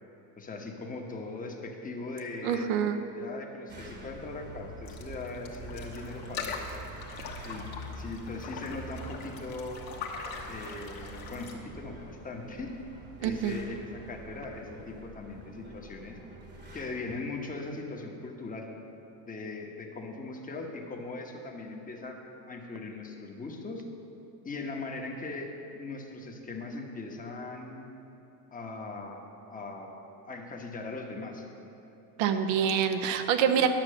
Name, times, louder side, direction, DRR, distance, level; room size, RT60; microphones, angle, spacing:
voice 1, 0.4-2.7 3.1-6.6 7.4-7.7 7.9-9.9 10.5-12.8 13.2-16.2 16.7-18.7 19.3-22.2 22.5-23.8 24.4-27.9 28.5-29.2 29.5-31.5, left 3 dB, 15° left, 1 dB, 1.1 m, -40 dB
voice 2, 2.4-3.0 13.2-13.6 32.2-33.7, right 8 dB, 70° right, 7 dB, 1.0 m, -26 dB
sound 1, 3.7-17.2, right 1 dB, 20° right, 1.2 m, -46 dB
sound 2, 4.9-11.5, left 5 dB, 45° left, 1.4 m, -42 dB
10.5 x 6.0 x 6.4 m, 2.9 s
supercardioid pair, 120°, 49 cm